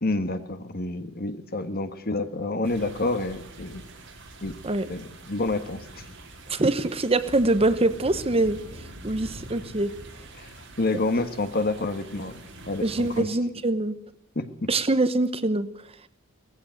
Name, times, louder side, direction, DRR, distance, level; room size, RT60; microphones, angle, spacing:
voice 1, 0.0-3.8 4.4-4.6 4.9-6.0 10.4-12.3 12.7-13.3 14.3-14.7, left 2 dB, 50° left, 10 dB, 1.7 m, -28 dB
sound 1, 2.6-13.2, right 1 dB, 65° right, 4.8 m, -44 dB
voice 2, 6.5-8.6 9.0-9.9 12.8-13.9 14.7-15.7, right 2 dB, 30° right, 12 dB, 1.0 m, -24 dB
18.5 x 15.5 x 9.1 m, 0.72 s
head